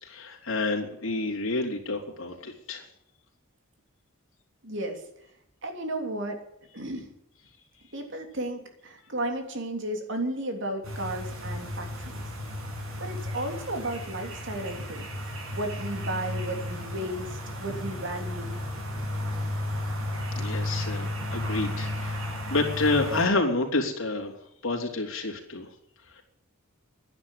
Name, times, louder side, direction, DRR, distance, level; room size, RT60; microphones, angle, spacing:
voice 1, 0.0-2.8 20.4-24.3 24.6-25.7 26.1-26.2, left 2 dB, 70° left, 0 dB, 3.7 m, -29 dB
voice 2, 4.6-5.0 5.6-6.4 6.7-7.1 7.9-12.2 13.0-15.0 15.5-18.6, right 1 dB, 60° right, 4 dB, 3.2 m, -33 dB
sound 1, 10.8-23.3, left 1 dB, 85° right, 6.4 m, -33 dB
11.5 x 10.5 x 10.0 m, 0.78 s
head